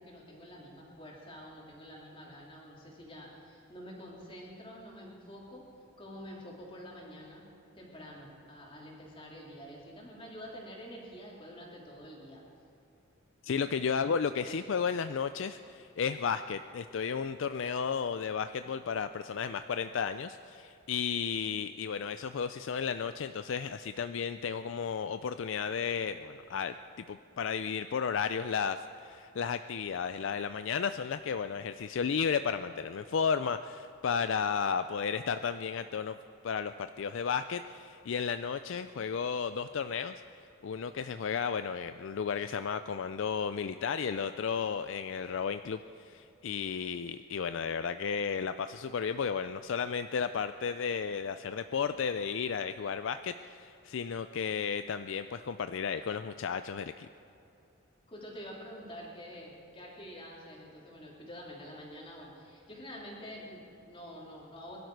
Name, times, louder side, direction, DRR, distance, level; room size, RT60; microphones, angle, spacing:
voice 1, 0.0-5.6 6.0-7.4 7.7-12.4 14.4-14.6 58.1-64.8, equal, 25° left, -3 dB, 3.1 m, -47 dB
voice 2, 13.4-26.7 27.1-36.2 36.4-40.2 40.6-57.1, left 6 dB, 60° left, 10 dB, 0.4 m, -33 dB
22.0 x 12.0 x 4.7 m, 2.9 s
head